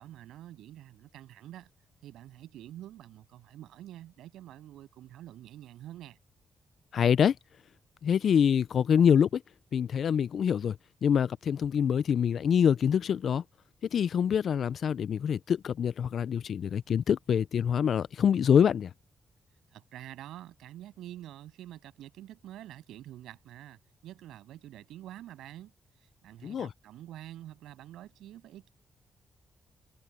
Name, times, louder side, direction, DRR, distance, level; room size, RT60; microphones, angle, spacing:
voice 1, 0.0-1.7 2.0-6.2 19.7-25.7 26.2-28.7, right 13 dB, 80° right, 7.9 m, -47 dB
voice 2, 6.9-7.4 8.0-9.4 9.7-10.8 11.0-13.4 13.9-18.9 26.4-26.7, left 8 dB, 65° left, 0.5 m, -25 dB
supercardioid pair, 45°, 0 cm